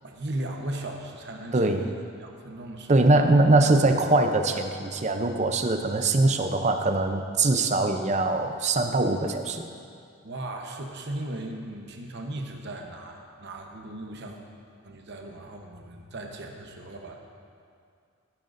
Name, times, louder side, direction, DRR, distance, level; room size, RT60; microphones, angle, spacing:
voice 1, 0.0-3.1 10.2-14.4 14.8-17.2, right 1 dB, 50° right, 2 dB, 1.0 m, -37 dB
voice 2, 1.5-1.9 2.9-9.7, right 2 dB, 30° right, 6 dB, 0.5 m, -22 dB
15.5 x 9.2 x 2.6 m, 2.3 s
head